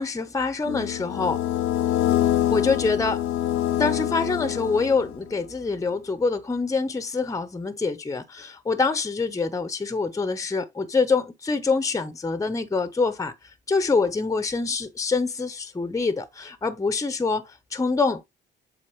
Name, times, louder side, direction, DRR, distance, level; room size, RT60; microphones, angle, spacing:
voice 1, 0.0-1.4 2.5-3.2 3.8-13.3 13.7-18.2, left 4 dB, 15° left, 0.8 m, -25 dB
sound 1, 0.7-5.3, left 12 dB, 80° left, 0.7 m, -25 dB
7.5 x 4.3 x 3.0 m
cardioid pair, 90°, 20 cm